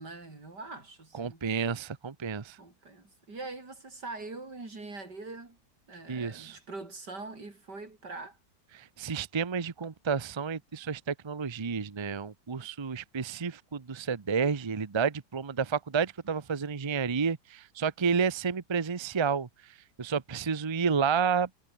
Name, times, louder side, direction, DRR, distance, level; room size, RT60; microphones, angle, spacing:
voice 1, 0.0-1.4 2.6-5.6 5.9-8.4, right 3 dB, 90° right, 5.6 m, -43 dB
voice 2, 1.1-2.6 6.1-6.6 8.7-19.5 20.0-21.5, right 6 dB, 25° right, 0.6 m, -30 dB
omnidirectional pair, 1.8 m